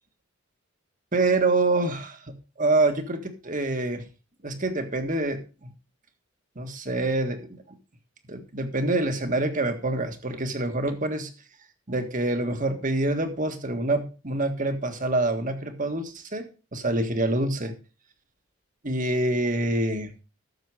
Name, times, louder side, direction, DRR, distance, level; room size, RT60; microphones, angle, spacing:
voice 1, 1.1-4.0 4.4-5.7 6.5-7.6 8.3-11.3 11.9-16.5 16.7-17.7 18.8-20.1, right 2 dB, 40° right, 7 dB, 1.7 m, -26 dB
12.5 x 7.2 x 4.8 m, 0.33 s
head